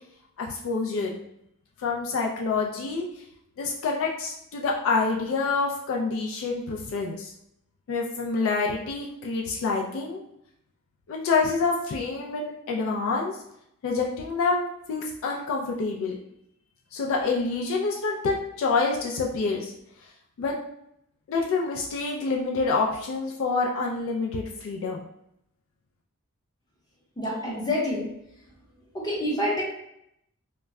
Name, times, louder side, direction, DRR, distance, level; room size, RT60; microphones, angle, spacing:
voice 1, 0.4-1.2 1.8-3.0 3.6-7.3 7.9-10.2 11.1-13.4 13.8-16.2 16.9-19.7 20.4-20.5 21.3-25.1, left 4 dB, 60° left, -1 dB, 0.3 m, -27 dB
voice 2, 27.2-28.1 28.9-29.6, left 1 dB, 20° left, -4 dB, 0.7 m, -27 dB
2.2 x 2.0 x 3.5 m, 0.77 s
head